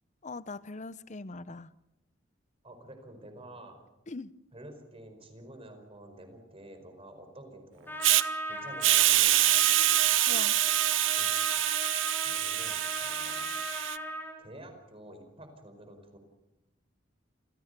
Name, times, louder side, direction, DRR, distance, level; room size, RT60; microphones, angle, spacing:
voice 1, 0.2-1.7 4.1-4.3 10.3-10.6, left 3 dB, 40° left, 0.7 m, -41 dB
voice 2, 2.6-3.8 4.5-8.0 8.4-9.5 11.1-11.3 12.2-13.6 14.4-16.2, right 1 dB, 30° right, 4.9 m, -49 dB
Trumpet, 7.9-14.4, equal, 10° left, 5.6 m, -37 dB
Hiss, 8.0-8.2 8.8-14.0, right 15 dB, 80° right, 0.7 m, -25 dB
28.5 x 16.5 x 6.8 m
head